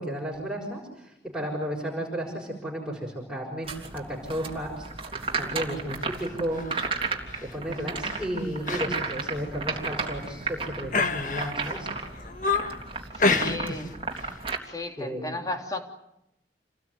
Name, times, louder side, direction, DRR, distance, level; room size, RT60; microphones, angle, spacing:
voice 1, 0.0-6.6 7.4-12.0 13.3-13.8 15.0-15.4, equal, 5° right, -5 dB, 6.3 m, -33 dB
sound 1, 3.6-14.6, right 4 dB, 30° right, 3.4 m, -34 dB
voice 2, 5.3-5.7 8.7-8.8 13.1-13.9 14.6-15.8, left 2 dB, 20° left, 4 dB, 3.0 m, -35 dB
sound 2, 6.5-6.9 7.3-7.6 8.0-8.3 8.7-8.9 9.2-9.3 9.9-10.4 10.9-11.7 12.1-12.8 13.2-13.9 14.1-14.4, left 4 dB, 45° left, 1.5 m, -28 dB
29.0 x 19.5 x 9.6 m, 0.82 s
head